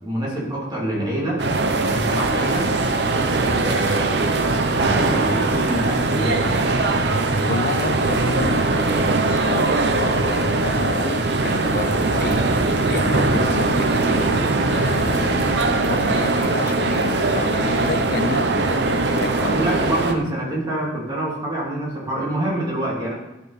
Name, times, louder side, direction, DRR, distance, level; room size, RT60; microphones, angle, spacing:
voice 1, 0.0-1.4 1.7-2.7 3.6-4.2 4.7-6.7 19.3-23.1, right 1 dB, 25° right, -5 dB, 2.8 m, -26 dB
sound 1, 1.4-20.1, right 3 dB, 70° right, 0.8 m, -21 dB
voice 2, 7.5-12.4 12.9-15.5 15.8-19.9, left 5 dB, 55° left, 11 dB, 0.4 m, -30 dB
sound 2, 9.9-10.8 12.1-13.5 14.2-14.3 14.6-16.5, equal, ahead, 3.2 m, -34 dB
12.0 x 5.4 x 4.1 m, 0.99 s
head